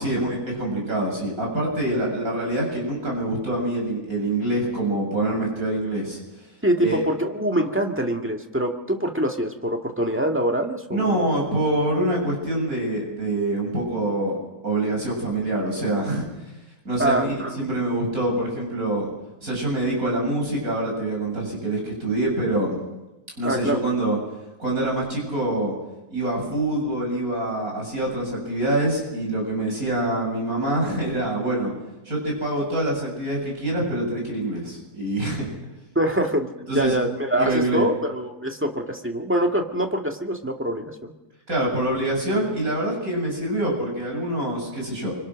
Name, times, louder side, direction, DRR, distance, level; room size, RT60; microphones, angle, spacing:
voice 1, 0.0-6.5 6.8-7.0 10.9-14.4 14.6-16.3 16.8-19.1 19.4-22.8 23.3-24.2 24.6-25.7 26.1-31.7 32.0-35.5 36.7-36.9 37.4-37.8 41.5-45.1, right 1 dB, 65° right, -2 dB, 8.0 m, -25 dB
voice 2, 6.6-11.2 17.0-17.5 23.4-23.8 35.9-36.5 36.7-41.1, right 1 dB, 10° right, 3 dB, 1.8 m, -24 dB
25.5 x 25.0 x 6.4 m, 1.0 s
omnidirectional pair, 1.6 m